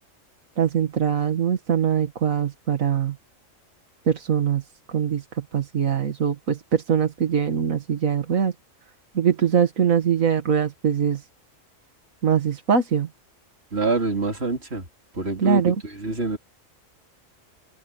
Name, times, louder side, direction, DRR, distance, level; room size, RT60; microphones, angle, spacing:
voice 1, 0.6-3.2 4.1-4.6 4.9-8.5 9.1-11.3 12.2-13.1 15.4-15.8, right 7 dB, 85° right, 2.1 m, -22 dB
voice 2, 13.7-14.9 15.1-16.4, right 3 dB, 50° right, 4.0 m, -26 dB
open air
omnidirectional pair, 1.4 m